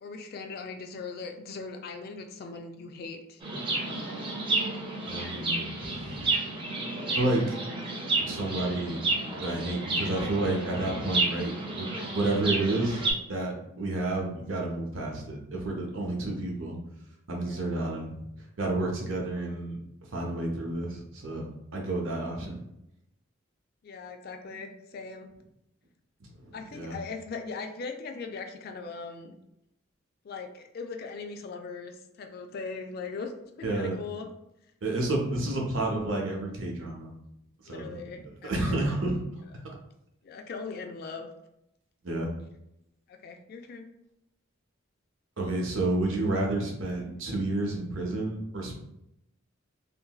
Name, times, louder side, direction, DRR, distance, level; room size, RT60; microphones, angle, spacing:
voice 1, 0.0-3.4 17.4-17.8 23.8-25.3 26.5-29.3 30.2-33.3 33.6-34.3 37.7-38.9 40.2-41.3 43.1-43.9, left 4 dB, 50° left, 5 dB, 0.3 m, -40 dB
Chirp tweet, 3.4-13.1, right 2 dB, 25° right, 0.4 m, -31 dB
voice 2, 5.1-6.3 7.1-7.4 8.3-9.0 9.4-13.0 13.3-16.8 17.3-18.2 18.6-19.8 20.1-22.6 26.4-27.0 33.6-34.0 34.8-37.1 37.6-38.0 38.4-39.2 42.0-42.3 45.4-48.8, right 2 dB, 70° right, 0 dB, 0.7 m, -30 dB
2.8 x 2.6 x 2.3 m, 0.83 s
head